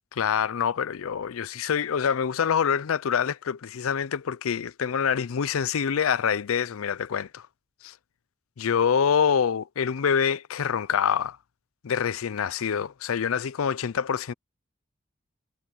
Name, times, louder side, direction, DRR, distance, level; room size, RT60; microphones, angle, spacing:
voice 1, 0.1-7.4 7.8-7.9 8.6-11.4 11.8-14.3, left 7 dB, 85° left, 0.5 m, -26 dB
head